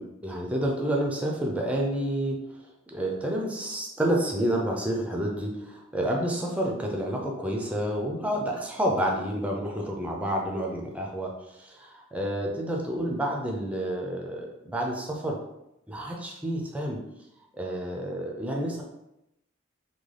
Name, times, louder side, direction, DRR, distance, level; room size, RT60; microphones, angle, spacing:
voice 1, 0.0-2.4 2.9-15.4 15.9-17.0 17.5-18.8, right 1 dB, 5° right, 0 dB, 0.4 m, -29 dB
3.6 x 2.2 x 3.2 m, 0.87 s
head